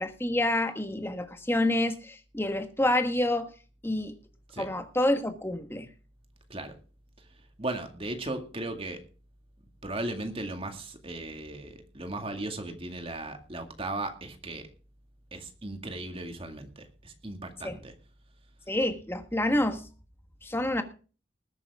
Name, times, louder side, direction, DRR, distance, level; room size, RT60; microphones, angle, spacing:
voice 1, 0.0-3.5 3.8-4.1 4.6-5.9 17.6-17.8 18.7-19.8 20.4-20.8, left 1 dB, 10° left, 7 dB, 1.4 m, -28 dB
voice 2, 7.6-9.0 9.8-14.7 15.3-17.9, right 2 dB, 30° right, 6 dB, 2.2 m, -37 dB
20.0 x 9.0 x 3.6 m, 0.37 s
head